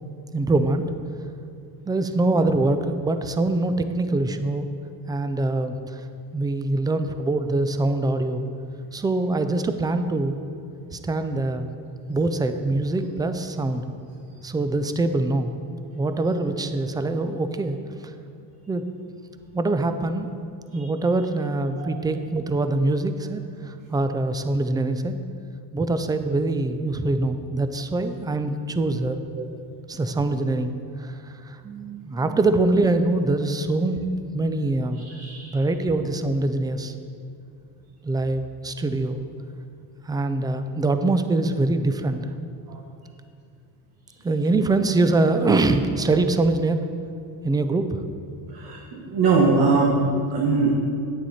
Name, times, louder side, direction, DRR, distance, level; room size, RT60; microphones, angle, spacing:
voice 1, 0.3-0.8 1.9-4.7 5.1-6.0 6.3-8.5 8.9-10.4 10.9-11.7 12.1-13.8 14.4-15.5 15.9-17.8 18.7-18.8 19.5-20.3 20.7-25.2 25.7-29.2 29.9-30.7 31.0-31.1 31.4-35.0 35.5-36.9 38.0-39.3 40.0-42.3 44.2-46.8 47.4-48.0, right 2 dB, 10° right, 9 dB, 0.4 m, -24 dB
voice 2, 35.2-35.5 48.5-49.9 50.3-50.7, right 4 dB, 60° right, -2 dB, 1.4 m, -21 dB
9.1 x 9.0 x 4.2 m, 2.5 s
cardioid pair, 125°, 41 cm